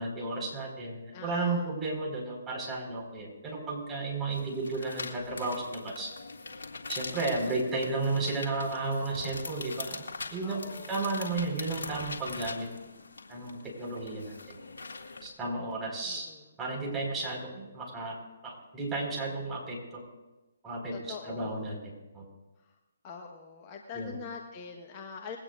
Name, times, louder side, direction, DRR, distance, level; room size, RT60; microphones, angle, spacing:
voice 1, 0.0-6.1 6.9-10.0 10.3-10.6 10.9-12.7 13.3-14.6 15.2-16.3 16.6-18.2 18.4-20.0 20.6-21.8 22.1-22.3 23.9-24.1, right 3 dB, 15° right, -3 dB, 5.2 m, -33 dB
voice 2, 1.1-1.7 10.4-11.0 16.0-16.5 20.9-21.7 22.6-22.8 23.0-25.4, left 5 dB, 30° left, 2 dB, 1.3 m, -44 dB
sound 1, 4.3-15.3, left 3 dB, 70° left, 2.2 m, -42 dB
21.5 x 17.5 x 2.6 m, 1.1 s
figure-of-eight pair, 140°, 0 cm